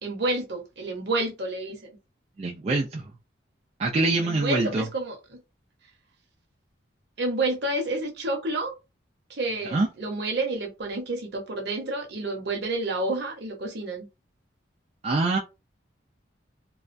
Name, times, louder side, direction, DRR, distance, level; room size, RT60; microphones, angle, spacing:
voice 1, 0.0-2.0 4.2-5.4 7.2-8.7 9.3-14.1, right 2 dB, 60° right, 0.8 m, -29 dB
voice 2, 2.4-3.1 3.8-4.9 9.7-9.9 15.0-15.4, right 2 dB, 35° right, 0.3 m, -24 dB
2.3 x 2.1 x 2.5 m
head